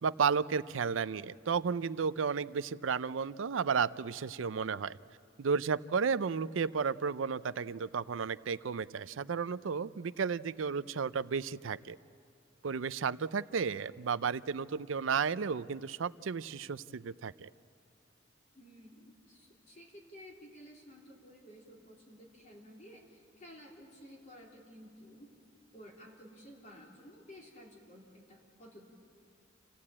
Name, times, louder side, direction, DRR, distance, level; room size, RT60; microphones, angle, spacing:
voice 1, 0.0-5.0 5.4-12.0 12.6-17.5, right 6 dB, 90° right, 16 dB, 0.5 m, -33 dB
voice 2, 18.5-25.3 25.7-28.9, equal, 40° left, -2 dB, 3.7 m, -54 dB
28.0 x 15.0 x 8.6 m, 2.4 s
head